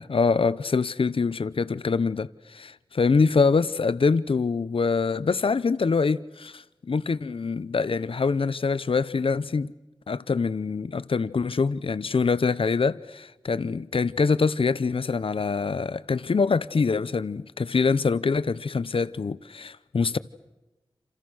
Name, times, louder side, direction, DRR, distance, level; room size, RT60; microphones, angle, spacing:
voice 1, 0.0-9.7 10.1-20.2, left 4 dB, 80° left, 0.9 m, -24 dB
29.0 x 28.0 x 6.4 m
wide cardioid pair, 75°, 9 cm